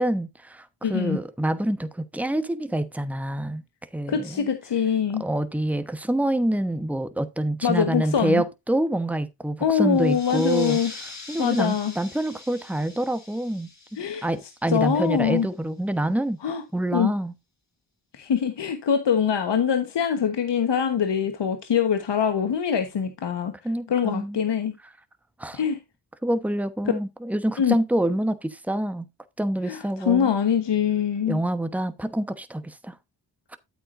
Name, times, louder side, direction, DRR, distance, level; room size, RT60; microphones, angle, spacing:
voice 1, 0.0-3.6 3.9-4.5 5.2-10.8 11.3-13.7 14.2-16.4 16.7-17.3 23.6-24.4 25.4-25.6 26.2-29.1 29.4-30.3 31.3-32.9, right 1 dB, 5° right, 1.0 m, -26 dB
voice 2, 0.8-1.2 4.1-5.2 7.6-8.4 9.6-10.9 11.4-11.9 14.0-14.3 14.7-15.5 16.4-16.6 16.9-17.1 18.1-23.5 23.9-24.7 25.5-25.8 27.6-27.7 29.7-31.4, left 7 dB, 70° left, 1.3 m, -23 dB
sound 1, 9.9-15.1, left 3 dB, 40° left, 2.8 m, -43 dB
9.5 x 8.4 x 2.6 m
cardioid pair, 50°, 43 cm